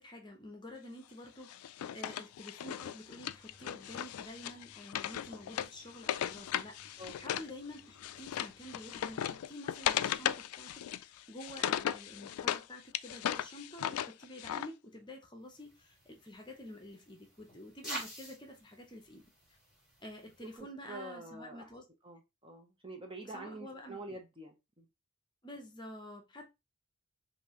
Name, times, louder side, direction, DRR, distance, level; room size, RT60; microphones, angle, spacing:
voice 1, 0.0-1.6 1.9-19.2 20.0-21.9 23.3-24.0 25.4-26.5, left 1 dB, 20° left, 0.8 m, -49 dB
Wood, 1.5-7.5 7.8-12.6 12.9-14.7, left 10 dB, 80° left, 0.3 m, -37 dB
sound 1, 3.2-9.3, left 1 dB, 45° right, 1.9 m, -64 dB
sound 2, 15.5-20.6, right 1 dB, ahead, 3.0 m, -48 dB
voice 2, 20.4-21.7 22.0-24.9, right 2 dB, 25° right, 0.7 m, -47 dB
5.3 x 2.7 x 2.9 m
head